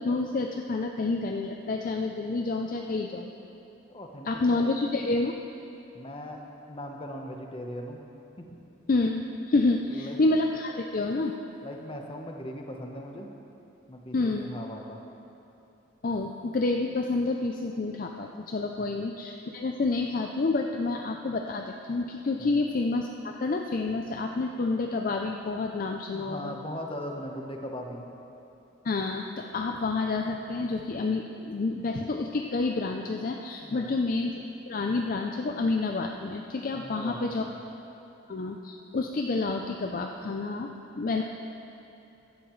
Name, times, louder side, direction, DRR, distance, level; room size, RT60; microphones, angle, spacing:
voice 1, 0.0-3.3 4.3-5.3 8.9-11.3 14.1-14.5 16.0-26.6 28.8-37.5 38.3-40.7 41.0-41.2, left 3 dB, 45° left, 3 dB, 0.4 m, -29 dB
voice 2, 3.9-4.7 5.9-6.4 6.7-8.0 8.4-8.6 9.9-10.2 11.6-13.3 13.9-15.0 18.8-18.9 22.4-22.6 26.1-28.1 33.6-34.0 36.7-37.6, equal, 25° left, 2 dB, 1.0 m, -39 dB
15.5 x 11.0 x 3.2 m, 2.9 s
head